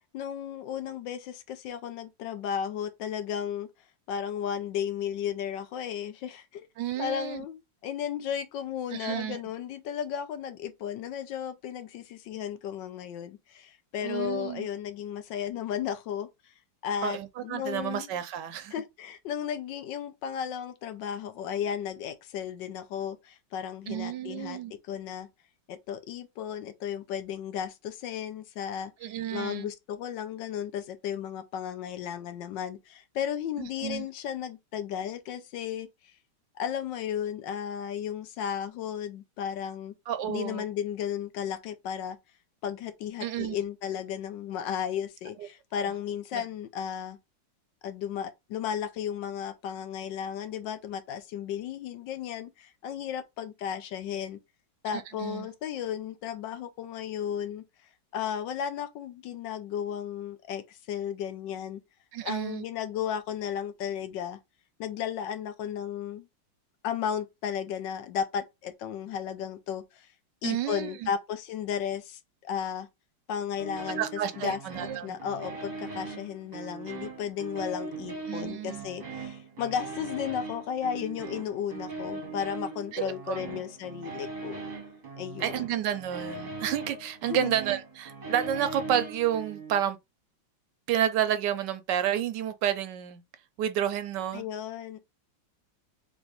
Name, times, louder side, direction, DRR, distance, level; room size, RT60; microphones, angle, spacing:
voice 1, 0.1-3.7 4.1-6.7 7.0-16.5 16.8-18.1 18.7-24.6 24.8-25.3 25.7-36.1 36.5-40.0 40.3-42.2 42.6-47.2 47.8-54.4 54.8-57.6 58.1-61.8 62.2-64.4 64.8-66.3 66.8-70.1 70.4-72.9 73.3-84.6 85.2-85.5 87.3-87.5 94.3-95.0, left 8 dB, 75° left, 1.3 m, -34 dB
voice 2, 6.8-7.4 8.9-9.4 14.0-14.7 17.0-18.7 23.9-24.7 29.0-29.7 33.6-34.1 40.1-40.6 43.2-43.6 46.3-46.4 54.9-55.5 62.1-62.6 70.4-71.1 74.0-75.2 78.3-78.9 82.9-83.4 85.4-90.0 90.9-93.2 93.6-94.4, right 10 dB, 75° right, 1.1 m, -30 dB
sound 1, 73.6-89.8, right 3 dB, 30° right, 0.9 m, -40 dB
3.5 x 3.4 x 3.8 m
omnidirectional pair, 2.1 m